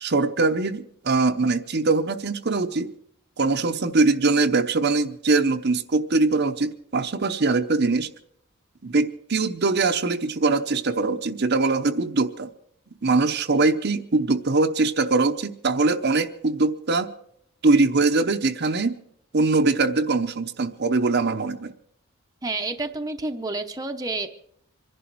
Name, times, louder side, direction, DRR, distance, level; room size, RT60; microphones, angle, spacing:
voice 1, 0.0-2.9 3.4-8.1 8.8-12.5 13.0-17.1 17.6-19.0 19.3-21.7, right 3 dB, 50° right, 7 dB, 0.8 m, -22 dB
voice 2, 22.4-24.3, right 2 dB, 15° right, 5 dB, 0.8 m, -29 dB
25.5 x 11.5 x 4.6 m, 0.69 s
head